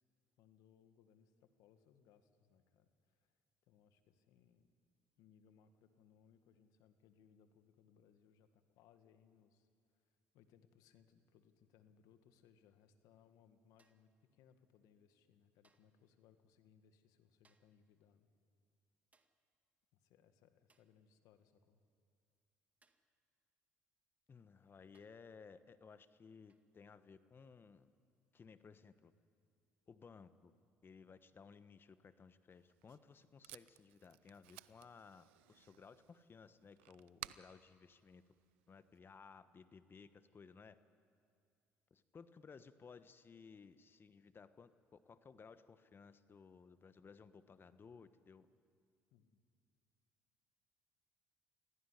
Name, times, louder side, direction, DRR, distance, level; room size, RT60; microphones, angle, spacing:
voice 1, 0.4-3.3 3.7-4.7 5.2-9.7 9.9-10.0 10.3-18.3 19.9-21.8 49.1-49.4, left 8 dB, 75° left, 9 dB, 1.9 m, -69 dB
sound 1, 13.8-14.2 15.6-16.0 17.4-17.9 19.1-19.5 20.7-21.0 22.8-23.2 24.2-24.3 24.9-25.3 26.5-26.8 28.4-28.6, right 3 dB, 25° right, 1.9 m, -77 dB
voice 2, 24.3-27.9 28.3-29.1 29.9-30.5 30.8-38.2 38.7-40.8 41.9-48.5, left 5 dB, 35° left, 12 dB, 1.3 m, -59 dB
Packing tape duct tape, 32.5-39.0, right 18 dB, 90° right, 0.5 m, -58 dB
26.5 x 17.0 x 10.0 m, 2.3 s
supercardioid pair, 70°, 6 cm